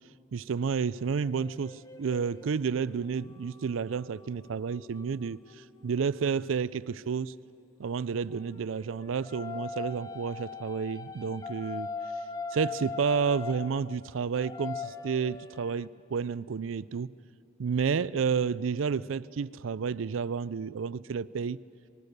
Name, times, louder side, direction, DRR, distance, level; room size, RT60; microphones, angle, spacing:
voice 1, 0.3-7.3 7.8-11.9 12.5-17.1 17.6-21.6, right 6 dB, 90° right, 19 dB, 0.4 m, -31 dB
sound 1, 1.2-6.4 8.3-15.9, left 5 dB, 20° left, 0.6 m, -41 dB
25.5 x 20.0 x 6.7 m, 2.6 s
head